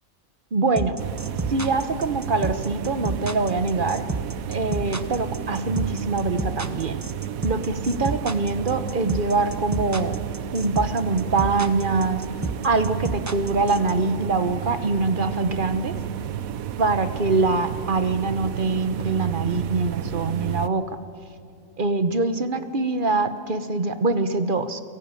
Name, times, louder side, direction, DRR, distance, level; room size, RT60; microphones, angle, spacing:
voice 1, 0.5-1.0 1.5-4.0 4.5-7.0 7.4-10.2 10.5-12.2 12.6-16.0 16.8-21.0 21.8-24.8, right 3 dB, 40° right, 11 dB, 1.2 m, -24 dB
sound 1, 0.8-13.9, right 2 dB, 15° right, 0.7 m, -30 dB
sound 2, 1.0-20.7, right 9 dB, 80° right, 1.2 m, -32 dB
29.5 x 17.5 x 9.1 m, 2.5 s
omnidirectional pair, 1.4 m